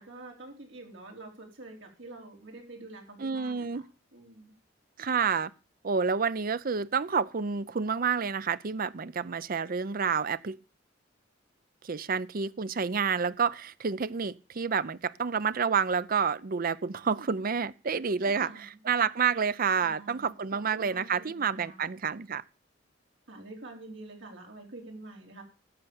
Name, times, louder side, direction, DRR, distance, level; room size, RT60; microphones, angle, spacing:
voice 1, 0.0-3.8 4.1-4.5 18.2-18.8 19.3-19.5 19.8-22.1 23.3-25.4, right 2 dB, 70° right, 4.6 m, -47 dB
voice 2, 3.2-3.8 5.0-5.5 5.8-10.6 11.8-22.4, right 6 dB, 45° right, 0.6 m, -29 dB
12.5 x 8.0 x 7.0 m
head